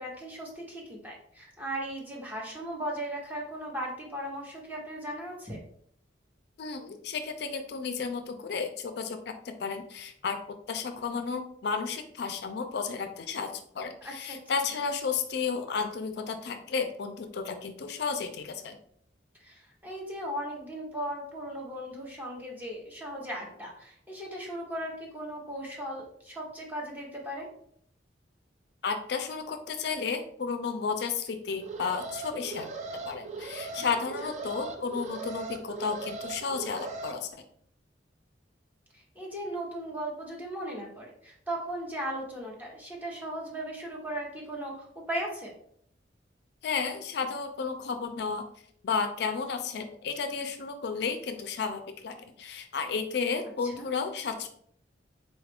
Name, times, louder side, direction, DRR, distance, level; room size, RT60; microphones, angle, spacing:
voice 1, 0.0-5.6 14.0-14.4 19.4-27.5 33.7-33.8 34.2-34.3 38.9-45.5 53.6-53.9, right 1 dB, 10° right, -2 dB, 0.9 m, -37 dB
voice 2, 6.6-9.3 9.6-10.4 10.7-18.8 28.8-32.7 33.1-37.4 46.6-48.4 48.8-54.5, left 5 dB, 60° left, 7 dB, 0.4 m, -33 dB
Alarm, 31.5-37.1, right 4 dB, 40° right, 0.4 m, -39 dB
4.0 x 2.4 x 3.4 m, 0.65 s
head